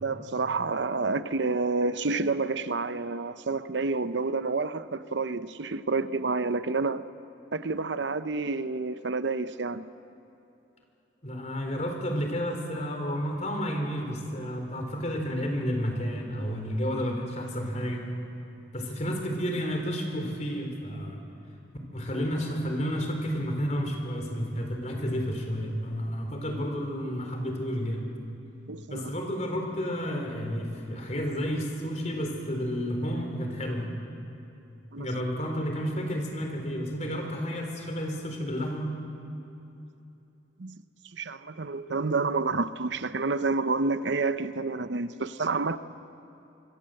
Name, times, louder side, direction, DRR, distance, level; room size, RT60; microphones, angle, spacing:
voice 1, 0.0-7.0 7.5-9.9 28.7-29.1 34.9-35.1 40.6-40.8 41.1-45.8, right 3 dB, 70° right, 0.8 m, -29 dB
voice 2, 11.2-18.1 18.7-21.2 21.9-28.1 28.9-33.9 35.0-38.9, equal, 40° left, 3.9 m, -31 dB
25.0 x 22.5 x 7.8 m
head